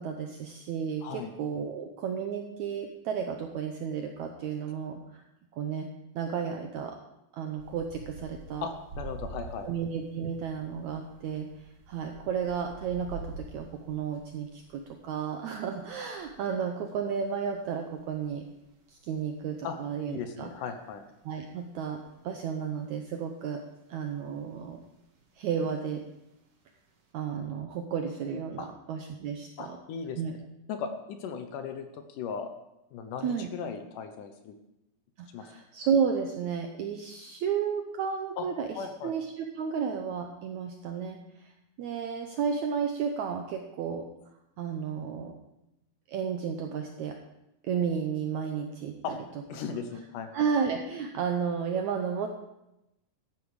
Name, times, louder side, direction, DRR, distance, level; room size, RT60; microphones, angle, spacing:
voice 1, 0.0-5.2 5.5-7.0 7.3-8.7 9.6-11.5 11.9-18.4 18.9-20.5 21.2-22.0 22.2-23.6 23.9-24.8 25.4-26.0 27.1-29.8 30.2-30.3 33.2-33.5 35.2-38.7 39.0-41.5 41.8-44.1 44.6-45.4 46.1-47.2 47.6-49.2 49.7-49.8 50.3-52.3, right 7 dB, 75° right, 4 dB, 1.7 m, -32 dB
voice 2, 1.0-1.3 8.6-9.7 19.6-19.8 20.1-21.0 28.6-28.7 29.6-30.2 30.7-32.5 32.9-34.5 35.3-35.5 38.4-38.5 38.8-39.1 49.0-49.2 49.5-50.3, left 6 dB, 70° left, 7 dB, 2.2 m, -37 dB
sound 1, 7.6-22.9 23.4-24.3 24.7-26.0 26.2-27.1, right 3 dB, 50° right, 2.3 m, -47 dB
13.5 x 11.0 x 4.9 m, 0.89 s
omnidirectional pair, 4.3 m